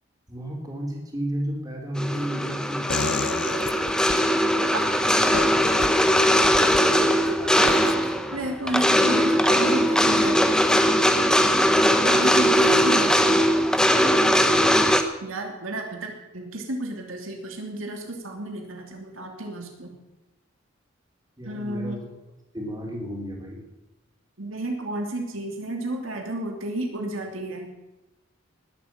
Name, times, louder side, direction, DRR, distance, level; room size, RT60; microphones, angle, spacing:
voice 1, 0.3-2.9 12.7-12.8 14.4-14.7 21.4-22.1 22.5-23.6, equal, 20° right, 0 dB, 3.5 m, -32 dB
sound 1, 2.0-15.0, equal, 5° left, 0.9 m, -20 dB
sound 2, 2.9-4.2 5.3-5.9 6.4-6.8 7.7-7.9, left 5 dB, 60° left, 0.7 m, -30 dB
voice 2, 6.9-10.7 12.0-13.4 15.2-19.9 21.4-22.0 24.4-27.7, right 1 dB, 90° right, 2 dB, 2.9 m, -32 dB
19.5 x 8.4 x 7.4 m, 1.0 s
head